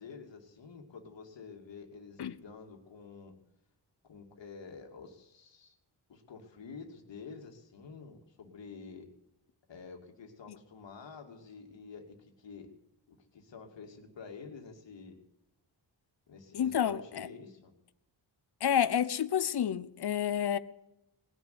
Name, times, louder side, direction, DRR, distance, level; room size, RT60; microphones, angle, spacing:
voice 1, 0.0-3.3 4.0-5.7 6.1-9.1 9.7-12.7 13.1-15.2 16.3-17.7, left 5 dB, 80° left, 2.7 m, -49 dB
voice 2, 16.5-17.3 18.6-20.6, left 9 dB, 60° left, 0.8 m, -29 dB
19.5 x 7.2 x 9.7 m
wide cardioid pair, 100°, 43 cm